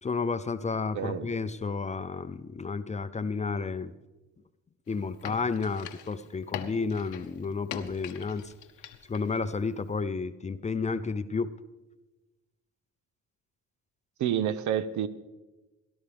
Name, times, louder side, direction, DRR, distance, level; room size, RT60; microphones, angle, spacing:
voice 1, 0.0-3.9 4.9-8.4 9.1-11.5, left 4 dB, 25° left, 13 dB, 0.5 m, -31 dB
voice 2, 0.9-1.3 14.2-15.1, right 9 dB, 70° right, 14 dB, 0.7 m, -28 dB
sound 1, 4.9-9.4 9.7-9.8, left 9 dB, 85° left, 0.8 m, -42 dB
17.5 x 11.5 x 3.4 m, 1.1 s
cardioid pair, 90°, 30 cm